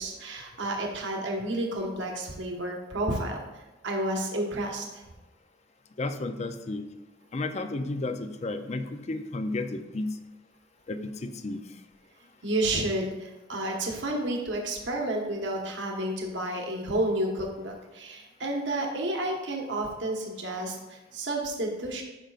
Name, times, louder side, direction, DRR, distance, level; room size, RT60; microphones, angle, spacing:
voice 1, 0.0-3.4 3.8-5.0 12.4-22.0, right 1 dB, 75° right, 0 dB, 1.3 m, -31 dB
voice 2, 6.0-6.8 7.3-10.2 10.9-11.6, left 2 dB, 35° left, 8 dB, 0.5 m, -32 dB
12.0 x 5.1 x 2.5 m, 1.1 s
head